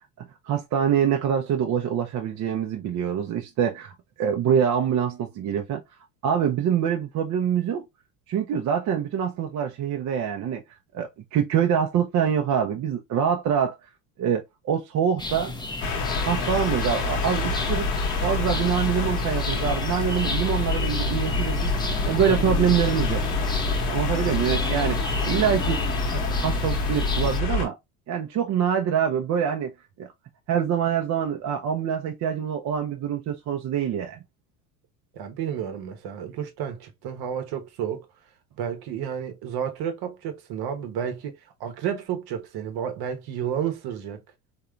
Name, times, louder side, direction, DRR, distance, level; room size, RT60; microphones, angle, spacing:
voice 1, 0.5-5.8 6.2-7.8 8.3-10.6 10.9-13.8 14.2-15.5 16.2-17.9 18.2-21.7 22.0-23.2 23.9-25.8 26.1-27.8 28.1-29.7 30.0-30.1 30.5-34.2, right 8 dB, 40° right, 0.6 m, -25 dB
sound 1, 15.2-27.4, left 3 dB, 10° left, 0.6 m, -33 dB
sound 2, 15.8-27.7, left 3 dB, 75° left, 1.1 m, -26 dB
voice 2, 35.1-38.1 38.6-44.2, right 8 dB, 55° right, 1.0 m, -31 dB
3.7 x 2.8 x 2.2 m
hypercardioid pair, 75°, 44 cm